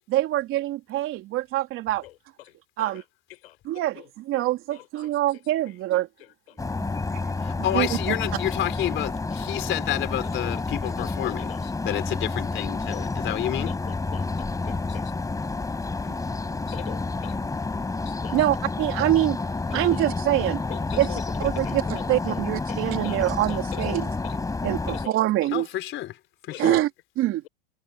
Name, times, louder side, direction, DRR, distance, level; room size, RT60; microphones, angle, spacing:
voice 1, 0.1-2.0 2.8-3.0 3.6-6.1 6.8-7.2 7.7-8.1 18.3-20.6 21.0-24.1 24.6-25.7 26.6-26.9 27.2-27.4, right 15 dB, 45° right, 3.1 m, -25 dB
sound 1, 6.6-25.1, left 3 dB, 10° left, 5.8 m, -29 dB
voice 2, 7.4-11.5 11.8-13.8 25.5-26.2 26.4-26.8, left 13 dB, 40° left, 4.2 m, -29 dB
voice 3, 11.0-12.0 12.9-13.0 13.9-15.0 16.7-17.4 18.1-18.4 19.7-20.0 20.7-21.2 21.7-22.4 22.7-22.8 23.0-24.4 24.9-25.1 26.5-26.7, left 16 dB, 85° left, 5.5 m, -42 dB
supercardioid pair, 125°, 30 cm